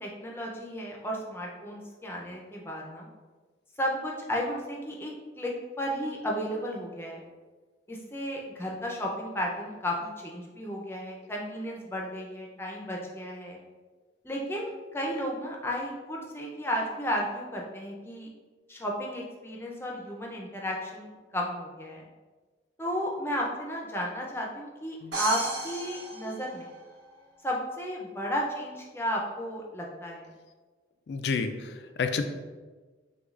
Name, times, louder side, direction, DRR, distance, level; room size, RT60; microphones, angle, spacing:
voice 1, 0.0-3.1 3.8-5.5 5.8-7.2 7.9-13.6 14.2-18.3 18.7-22.0 22.8-26.7 27.4-30.2, equal, 15° left, -2 dB, 0.5 m, -33 dB
sound 1, 25.1-27.1, right 2 dB, 75° right, 1.0 m, -34 dB
voice 2, 31.1-32.2, left 5 dB, 65° left, 7 dB, 0.3 m, -30 dB
6.2 x 2.3 x 2.4 m, 1.3 s
head